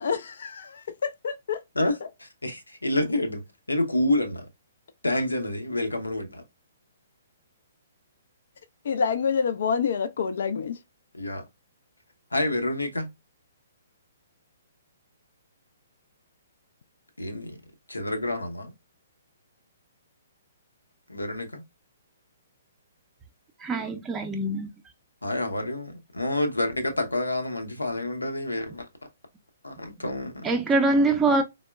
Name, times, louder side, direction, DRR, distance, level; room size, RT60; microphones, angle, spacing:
voice 1, 0.0-1.6 2.0-2.1 8.8-10.8, left 6 dB, 60° left, 0.3 m, -27 dB
voice 2, 1.7-3.4 3.7-4.5 5.0-6.4 11.1-11.4 12.3-13.1 17.2-17.6 17.9-18.7 21.1-21.6 25.2-28.9 29.6-30.5, left 1 dB, 85° left, 0.7 m, -28 dB
voice 3, 23.6-24.7 30.4-31.4, right 2 dB, 15° right, 0.4 m, -23 dB
4.2 x 2.0 x 2.2 m
figure-of-eight pair, 125°, 0 cm